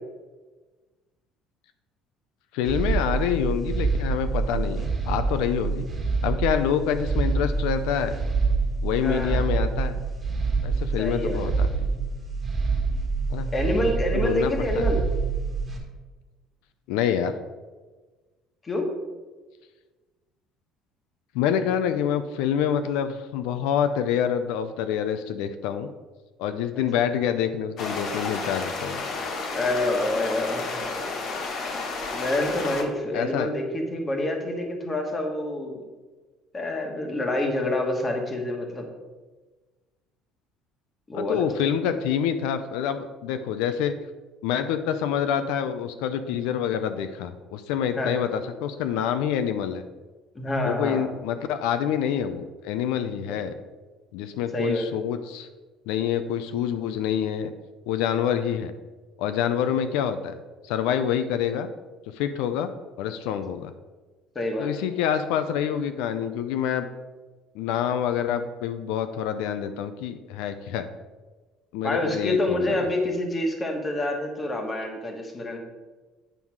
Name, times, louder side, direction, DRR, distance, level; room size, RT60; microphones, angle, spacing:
voice 1, 2.5-5.9 6.2-8.2 8.8-10.0 10.6-11.9 13.3-13.5 14.1-14.9 16.9-17.4 21.3-25.9 26.4-29.0 33.1-33.5 41.1-44.0 44.4-49.8 50.6-53.5 54.1-55.5 55.9-57.5 57.9-58.7 59.2-60.4 60.6-61.7 62.1-62.7 63.0-63.7 64.6-66.9 67.5-70.9 71.7-72.8, left 9 dB, 85° left, 10 dB, 0.5 m, -27 dB
sound 1, 2.6-15.8, right 4 dB, 15° right, 1.5 m, -26 dB
voice 2, 9.0-9.5 11.0-11.5 13.5-15.0 18.6-18.8 26.7-26.8 29.5-30.9 32.1-35.8 36.5-38.9 41.1-41.5 47.9-48.1 50.3-51.1 54.5-54.9 64.3-64.7 71.8-75.6, left 1 dB, 15° left, 2 dB, 1.2 m, -27 dB
sound 2, 27.8-32.8, left 3 dB, 40° left, 1.0 m, -31 dB
9.1 x 5.6 x 4.7 m, 1.3 s
cardioid pair, 180°, 0 cm